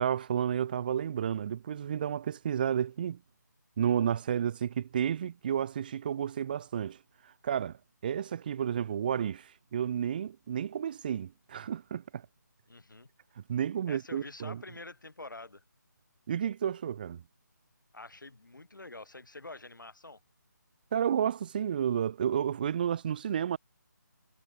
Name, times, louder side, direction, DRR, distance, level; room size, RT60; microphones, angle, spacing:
voice 1, 0.0-3.2 3.8-7.0 7.4-12.2 13.5-14.6 16.3-17.2 20.9-23.6, right 9 dB, 30° right, 1.1 m, -31 dB
voice 2, 12.7-13.1 13.9-15.6 17.9-20.2, left 2 dB, 90° left, 8.0 m, -46 dB
figure-of-eight pair, 165°, 10 cm